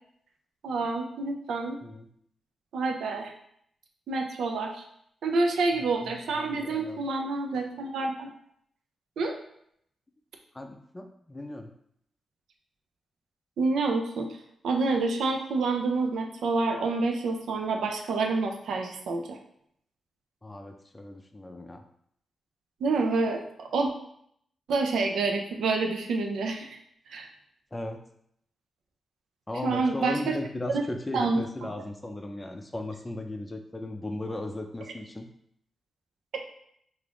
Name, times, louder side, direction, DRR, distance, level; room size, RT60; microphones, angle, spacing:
voice 1, 0.6-1.8 2.7-3.3 4.1-4.8 5.2-8.3 9.2-9.3 13.6-14.3 14.6-19.4 22.8-23.9 24.7-26.7 27.1-27.3 29.6-30.4 31.1-31.7, right 3 dB, 80° right, 4 dB, 0.4 m, -28 dB
voice 2, 5.7-7.1 10.5-11.7 20.4-21.8 27.7-28.0 29.5-35.3, left 1 dB, 20° left, 5 dB, 0.4 m, -37 dB
2.5 x 2.4 x 3.3 m, 0.70 s
cardioid pair, 65°, 0 cm